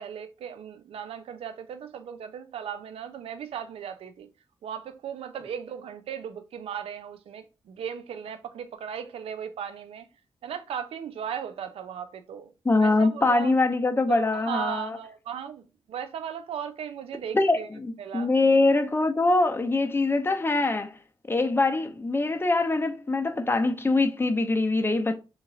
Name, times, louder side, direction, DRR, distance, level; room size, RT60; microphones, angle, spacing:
voice 1, 0.0-4.3 4.6-10.1 10.4-12.5 12.8-13.5 14.1-17.7 18.0-18.3, right 8 dB, 85° right, 0.4 m, -37 dB
voice 2, 12.6-15.0 17.3-21.0 21.3-25.1, left 2 dB, 25° left, 0.6 m, -23 dB
2.9 x 2.4 x 3.9 m
cardioid pair, 60°, 10 cm